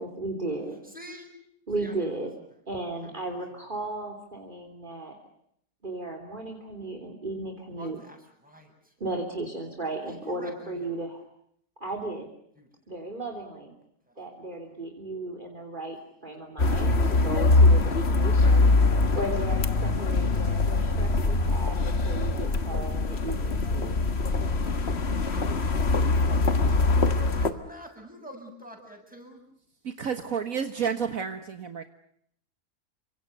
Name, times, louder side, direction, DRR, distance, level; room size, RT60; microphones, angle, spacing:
voice 1, 0.0-0.8 1.7-2.3 2.7-5.2 5.8-8.0 9.0-11.2 11.8-12.3 12.9-13.7 14.2-18.6 19.2-23.9, right 2 dB, 30° right, 4 dB, 3.5 m, -35 dB
voice 2, 0.8-1.4 1.8-2.1 3.0-3.4 7.8-8.9 10.1-11.0 12.6-12.7 13.0-13.2 14.1-14.2 16.0-16.4 17.9-18.0 19.1-19.2 26.8-29.4, equal, 5° right, 2 dB, 7.8 m, -48 dB
sound 1, 16.6-27.5, left 3 dB, 45° left, 1.8 m, -23 dB
voice 3, 29.8-31.8, right 7 dB, 65° right, 8 dB, 1.8 m, -30 dB
29.5 x 25.0 x 6.7 m, 0.69 s
omnidirectional pair, 1.6 m